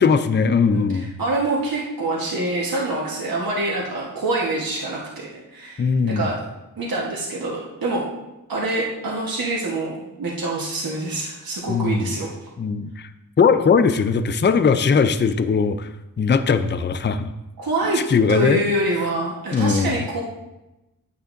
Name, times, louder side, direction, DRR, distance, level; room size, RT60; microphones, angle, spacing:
voice 1, 0.0-1.1 5.8-6.3 11.7-12.1 12.6-13.1 13.4-15.9 16.2-17.3 18.1-18.6 19.5-20.0, left 5 dB, 30° left, 11 dB, 0.4 m, -19 dB
voice 2, 0.7-6.4 6.8-8.1 8.5-12.3 17.6-18.0 18.3-20.2, right 2 dB, 80° right, -4 dB, 1.3 m, -25 dB
9.5 x 8.2 x 2.6 m, 0.98 s
wide cardioid pair, 100°, 34 cm